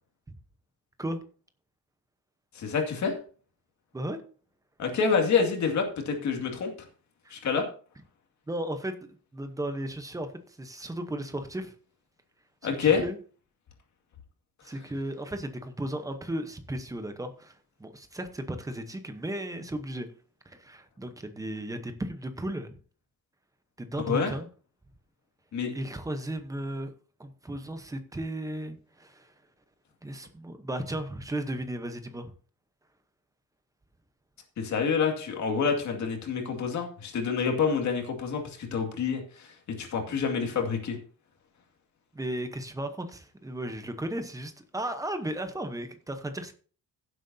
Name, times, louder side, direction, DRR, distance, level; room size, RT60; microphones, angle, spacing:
voice 1, 2.6-3.2 4.8-6.7 7.3-7.6 12.6-13.0 24.1-24.3 25.5-25.7 34.6-39.5 39.8-41.0, left 6 dB, 50° left, 2 dB, 2.3 m, -27 dB
voice 2, 8.5-8.9 9.3-11.7 12.6-13.2 14.6-20.1 20.5-22.7 23.8-24.5 25.7-26.9 27.2-29.3 30.0-32.3 42.1-46.5, right 1 dB, 10° right, 7 dB, 0.9 m, -35 dB
16.0 x 7.7 x 2.7 m, 0.41 s
cardioid pair, 175°, 36 cm